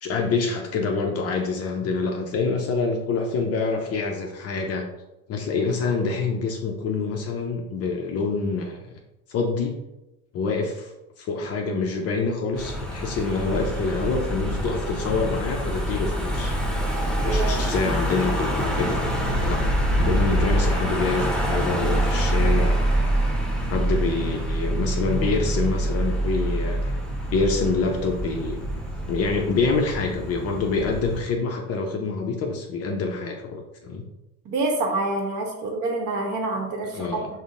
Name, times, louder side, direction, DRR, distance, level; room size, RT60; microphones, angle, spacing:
voice 1, 0.0-4.9 5.3-8.8 9.3-9.8 10.3-16.6 17.2-19.6 19.9-22.8 23.7-26.9 27.3-28.6 29.1-34.0 36.9-37.3, left 4 dB, 35° left, 2 dB, 0.5 m, -26 dB
Car passing by / Engine, 12.6-31.2, right 1 dB, ahead, 0.9 m, -25 dB
voice 2, 34.4-37.2, right 2 dB, 40° right, 2 dB, 0.9 m, -27 dB
5.1 x 2.1 x 2.4 m, 0.95 s
hypercardioid pair, 80°, 44 cm